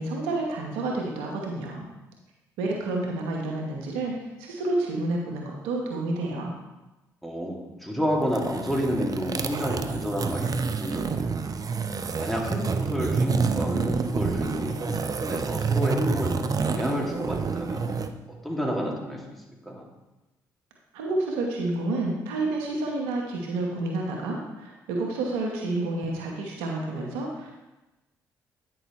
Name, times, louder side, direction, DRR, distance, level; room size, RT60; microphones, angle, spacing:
voice 1, 0.0-1.9 2.6-6.5 20.9-27.5, right 2 dB, 85° right, 0 dB, 1.0 m, -29 dB
voice 2, 7.2-11.4 12.1-17.9 18.4-19.2 19.6-19.8, equal, ahead, -2 dB, 2.3 m, -30 dB
sound 1, 8.2-18.1, right 4 dB, 40° right, 0.6 m, -28 dB
9.0 x 6.0 x 3.1 m, 1.1 s
hypercardioid pair, 45°, 9 cm